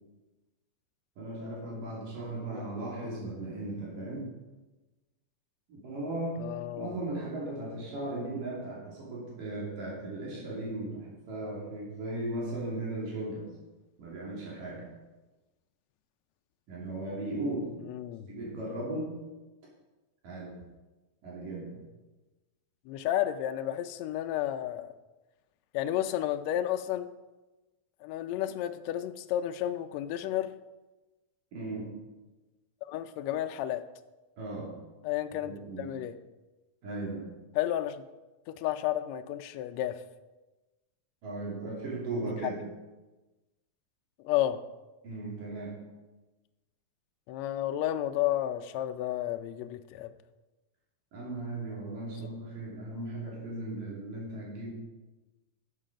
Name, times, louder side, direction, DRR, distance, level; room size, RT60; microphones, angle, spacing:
voice 1, 1.2-4.3 5.7-6.4 6.7-13.5 14.0-14.8 16.7-17.7 18.3-19.2 20.2-20.5 21.2-21.8 31.5-32.0 34.4-34.7 35.4-35.9 36.8-37.3 41.2-42.6 45.0-45.8 51.1-54.7, right 2 dB, 80° right, -5 dB, 4.3 m, -37 dB
voice 2, 6.4-7.0 17.8-18.3 22.9-24.9 25.7-27.1 28.0-30.5 32.9-33.8 35.0-36.2 37.5-38.0 38.5-40.0 42.4-42.5 44.2-44.6 47.3-50.1, left 12 dB, 80° left, 9 dB, 1.6 m, -32 dB
12.5 x 7.5 x 5.1 m, 1.1 s
omnidirectional pair, 3.7 m